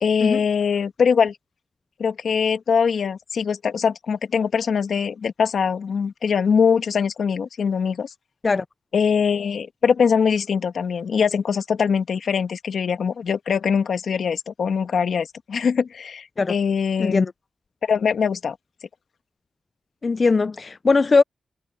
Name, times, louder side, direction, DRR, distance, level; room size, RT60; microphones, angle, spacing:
voice 1, 0.0-1.4 2.0-8.1 8.9-17.2 17.8-18.6, left 6 dB, 75° left, 1.7 m, -22 dB
voice 2, 17.0-17.3 20.0-21.2, left 4 dB, 45° left, 0.4 m, -19 dB
cardioid pair, 75°, 0 cm